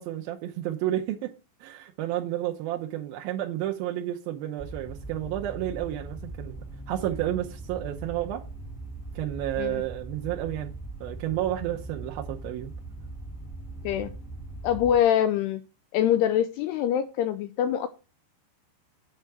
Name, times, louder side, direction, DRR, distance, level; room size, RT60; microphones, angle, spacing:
voice 1, 0.0-1.3 1.6-6.6 6.9-8.4 9.2-10.7 11.0-12.7, right 13 dB, 90° right, 2.1 m, -31 dB
sound 1, 4.6-15.0, right 2 dB, ahead, 0.9 m, -40 dB
voice 2, 14.6-15.6 15.9-17.9, left 10 dB, 85° left, 2.4 m, -24 dB
8.7 x 4.7 x 6.7 m
omnidirectional pair, 5.2 m